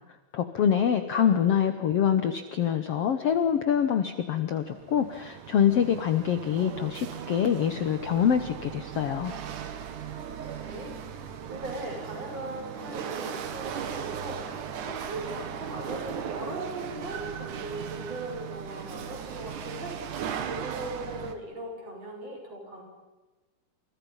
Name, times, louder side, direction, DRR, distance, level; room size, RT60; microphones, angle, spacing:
voice 1, 0.3-9.3, left 8 dB, 65° left, 8 dB, 1.7 m, -25 dB
voice 2, 1.1-1.5 10.0-10.1 10.6-11.0 11.5-14.6 14.8-22.8, right 2 dB, 45° right, 0 dB, 7.6 m, -39 dB
Chatter / Hiss / Rattle, 4.5-21.4, right 8 dB, 70° right, 3.0 m, -37 dB
29.5 x 29.0 x 5.7 m, 1.2 s
omnidirectional pair, 3.9 m